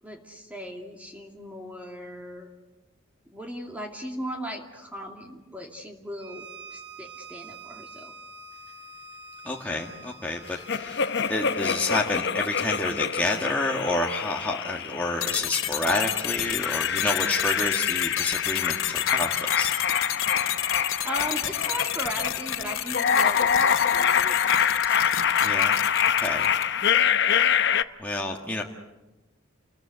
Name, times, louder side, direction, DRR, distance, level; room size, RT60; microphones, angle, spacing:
voice 1, 0.0-2.5 3.3-8.1 21.0-25.1 26.8-27.1, equal, 10° right, 1 dB, 2.4 m, -38 dB
Bowed string instrument, 6.2-12.2, right 2 dB, 25° right, 2.5 m, -45 dB
voice 2, 9.4-11.0 11.3-19.7 25.4-25.7 26.2-26.5 28.0-28.6, left 2 dB, 10° left, -1 dB, 1.7 m, -29 dB
sound 1, 10.7-15.4 15.9-27.8, left 8 dB, 55° left, 0.8 m, -25 dB
sound 2, 15.2-26.8, left 11 dB, 85° left, 2.4 m, -31 dB
29.5 x 22.0 x 8.0 m, 1.1 s
head